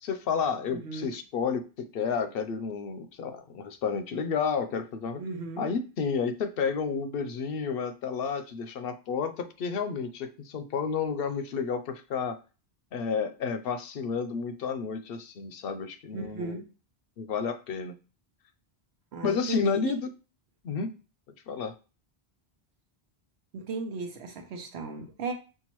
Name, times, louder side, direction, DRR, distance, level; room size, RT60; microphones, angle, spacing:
voice 1, 0.0-5.2 5.6-12.4 12.9-16.6 17.2-17.9 19.2-20.0 20.6-20.9 21.5-21.7, left 6 dB, 70° left, 9 dB, 0.7 m, -31 dB
voice 2, 0.7-1.1 5.2-5.7 16.1-16.7 19.1-20.0 23.5-25.3, right 3 dB, 90° right, 5 dB, 1.0 m, -35 dB
5.5 x 2.5 x 3.0 m, 0.33 s
omnidirectional pair, 1.1 m